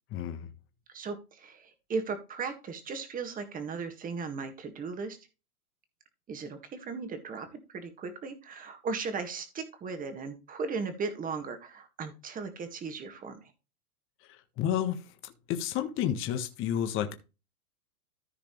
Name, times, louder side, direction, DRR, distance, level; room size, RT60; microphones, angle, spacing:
voice 1, 0.1-0.5 14.3-17.1, left 10 dB, 30° left, 1.4 m, -31 dB
voice 2, 0.9-5.2 6.3-13.4, right 4 dB, 20° right, 1.9 m, -37 dB
14.5 x 5.0 x 3.2 m
hypercardioid pair, 130°, 44 cm